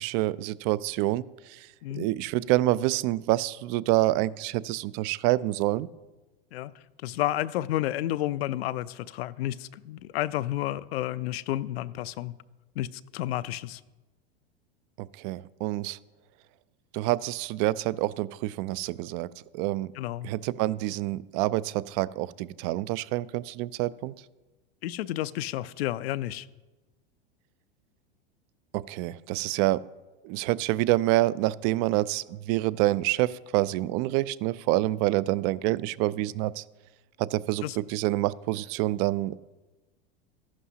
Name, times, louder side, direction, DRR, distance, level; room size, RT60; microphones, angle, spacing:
voice 1, 0.0-5.9 15.0-16.0 16.9-19.9 20.2-24.1 28.7-29.8 30.2-36.6 37.2-39.3, right 17 dB, 50° right, 20 dB, 0.4 m, -27 dB
voice 2, 7.0-12.4 12.8-13.8 20.0-20.3 24.8-26.5 37.6-37.8, left 14 dB, 80° left, 16 dB, 0.5 m, -31 dB
14.0 x 11.5 x 2.8 m, 1.2 s
hypercardioid pair, 110°, 30 cm